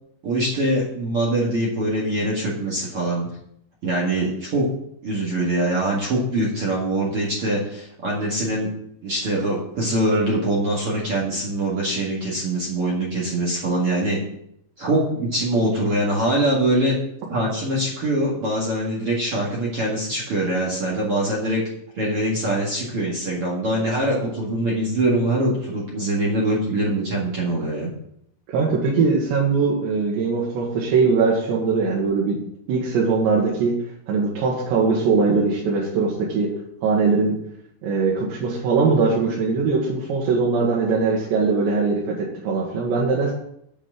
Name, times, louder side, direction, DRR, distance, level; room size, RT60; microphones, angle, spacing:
voice 1, 0.2-3.3 3.8-4.7 5.0-8.7 9.0-14.2 14.8-17.0 17.3-21.6 22.0-27.9, right 1 dB, 45° right, -4 dB, 2.0 m, -23 dB
voice 2, 28.5-32.4 32.7-33.7 34.1-36.5 36.8-37.4 37.8-43.3, right 4 dB, 75° right, -4 dB, 3.7 m, -21 dB
8.4 x 6.1 x 7.5 m, 0.73 s
omnidirectional pair, 5.2 m